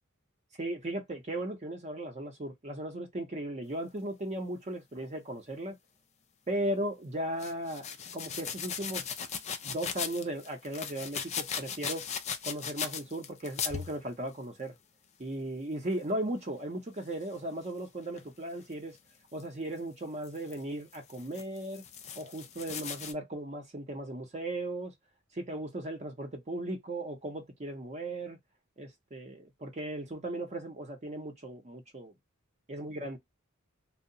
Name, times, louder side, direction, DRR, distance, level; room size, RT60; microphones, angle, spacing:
voice 1, 0.6-5.8 6.5-7.9 8.1-9.2 9.6-12.1 12.4-14.8 15.2-19.0 19.3-21.8 22.2-24.9 25.3-28.4 28.8-32.1 32.7-33.2, right 1 dB, 30° right, 0.6 m, -37 dB
sound 1, 7.4-14.0 17.2-17.4 18.2-18.3 19.4-19.5 20.2-20.6 20.9-23.1, left 7 dB, 30° left, 0.3 m, -38 dB
2.7 x 2.1 x 2.5 m
head